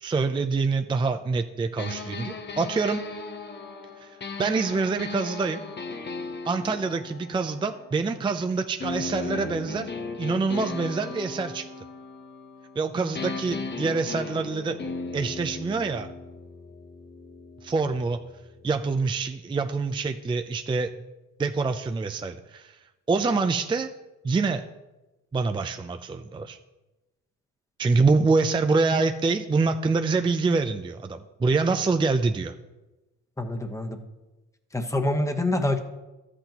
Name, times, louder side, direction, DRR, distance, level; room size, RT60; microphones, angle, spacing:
voice 1, 0.0-3.0 4.0-5.6 6.4-9.9 10.2-11.7 12.8-14.8 15.1-16.1 17.6-18.2 18.6-20.9 21.4-22.8 23.1-23.9 24.2-24.6 25.3-26.6 27.8-32.5, right 4 dB, 15° right, 7 dB, 0.4 m, -25 dB
sound 1, 1.8-8.3 8.8-12.8 13.1-18.9, left 3 dB, 35° left, 1.0 m, -37 dB
voice 2, 33.4-34.0 34.7-35.8, left 1 dB, 10° left, 5 dB, 1.0 m, -26 dB
12.5 x 8.0 x 2.9 m, 1.1 s
cardioid pair, 90°, 30 cm